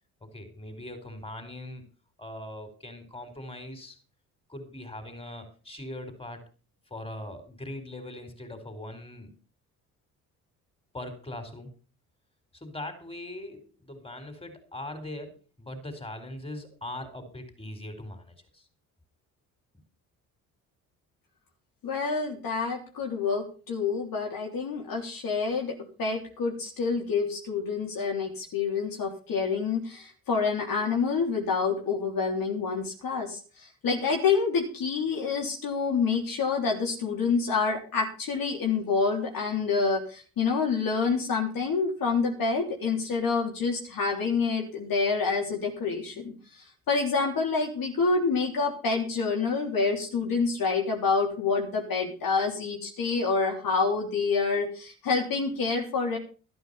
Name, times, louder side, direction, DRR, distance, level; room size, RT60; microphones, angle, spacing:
voice 1, 0.2-1.8 2.2-4.0 4.5-6.4 6.9-9.3 10.9-11.7 12.5-18.6, left 1 dB, 15° left, 8 dB, 4.9 m, -41 dB
voice 2, 21.8-46.3 46.9-56.2, left 4 dB, 60° left, 1 dB, 3.5 m, -27 dB
12.5 x 10.0 x 5.7 m, 0.37 s
hypercardioid pair, 55°, 39 cm